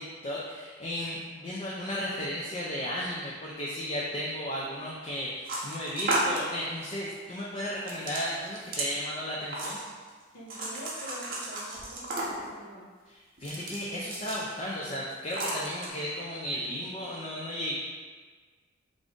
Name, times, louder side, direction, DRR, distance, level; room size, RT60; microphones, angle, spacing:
voice 1, 0.0-9.8 13.1-17.8, equal, 30° left, -5 dB, 0.4 m, -34 dB
sound 1, 5.4-6.5 7.9-8.9 9.5-10.1 10.5-12.5 13.4-14.5 14.8-14.9 15.3-15.9, right 1 dB, 45° right, 0.7 m, -33 dB
voice 2, 10.3-12.9, equal, 90° left, -12 dB, 1.0 m, -45 dB
3.7 x 2.5 x 3.5 m, 1.5 s
head